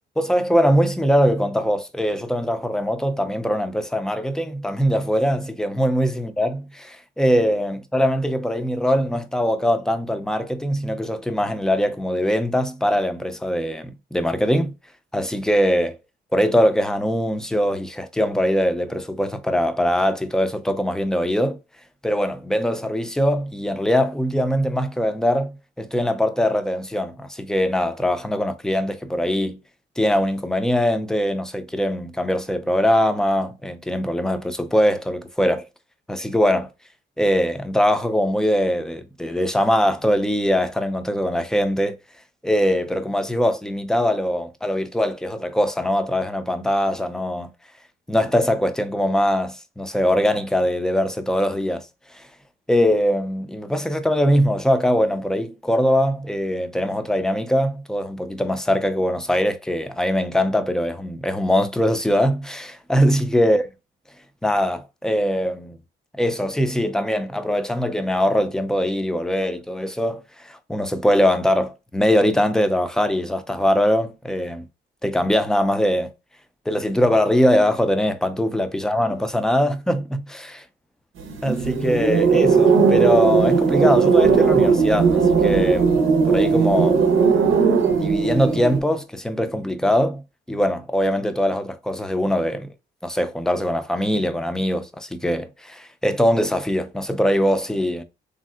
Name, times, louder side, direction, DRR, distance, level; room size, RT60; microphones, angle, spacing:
voice 1, 0.2-14.7 15.1-16.0 16.3-21.6 22.0-29.6 30.0-35.7 36.1-36.7 37.2-42.0 42.4-47.5 48.1-51.8 52.1-52.2 52.7-63.6 64.4-65.8 66.1-74.7 75.0-76.1 76.7-80.6 81.4-85.9 86.3-87.0 87.9-90.2 90.5-92.7 93.0-98.0, equal, 5° left, 0.4 m, -22 dB
sound 1, 81.2-88.8, right 5 dB, 80° right, 0.6 m, -17 dB
3.3 x 2.6 x 2.3 m
cardioid pair, 90°, 20 cm